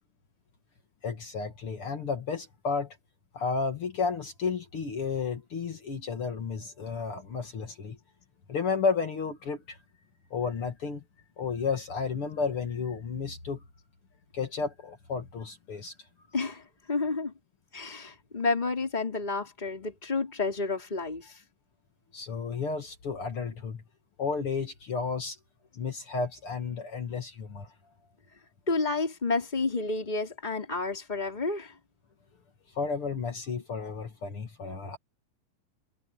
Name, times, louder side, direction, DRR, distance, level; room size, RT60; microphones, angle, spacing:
voice 1, 1.0-3.0 3.3-8.0 8.5-9.8 10.3-11.0 11.4-13.6 14.3-15.9 22.1-23.8 24.2-25.4 25.8-27.7 32.8-35.0, left 5 dB, 45° left, 2.2 m, -32 dB
voice 2, 16.3-16.6 16.9-17.3 17.7-21.3 28.7-31.7, left 3 dB, 10° left, 4.4 m, -30 dB
omnidirectional pair, 4.1 m